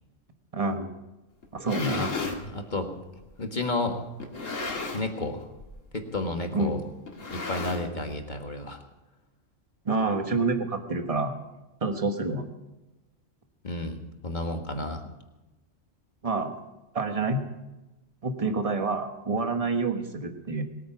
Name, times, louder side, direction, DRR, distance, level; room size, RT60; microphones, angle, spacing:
voice 1, 0.5-0.9 1.5-2.0 6.5-6.7 9.8-11.3 11.8-12.4 16.2-16.5 16.9-17.4 18.2-20.6, right 3 dB, 30° right, 6 dB, 1.3 m, -27 dB
sound 1, 1.4-2.4 3.2-3.3 4.2-5.2 5.5-5.8 6.1-6.2 7.1-8.1, left 3 dB, 75° left, 2.4 m, -34 dB
voice 2, 2.4-2.9 3.4-4.0 4.9-5.5 5.9-6.8 7.3-8.8 13.6-15.0, left 2 dB, 35° left, 4 dB, 1.6 m, -31 dB
21.0 x 9.3 x 6.0 m, 1.0 s
omnidirectional pair, 1.3 m